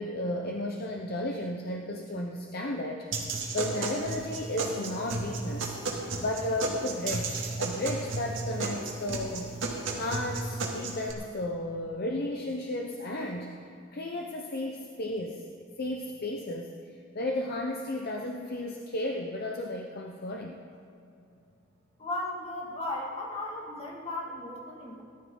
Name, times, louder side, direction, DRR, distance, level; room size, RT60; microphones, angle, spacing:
voice 1, 0.0-5.8 6.2-9.5 9.9-13.6 13.9-15.4 15.8-20.6, left 1 dB, 50° left, 2 dB, 0.8 m, -34 dB
sound 1, 3.1-11.1, right 3 dB, 65° right, 2.0 m, -33 dB
voice 2, 22.0-25.0, left 1 dB, 30° left, -3 dB, 2.2 m, -36 dB
18.0 x 12.5 x 3.9 m, 2.5 s
head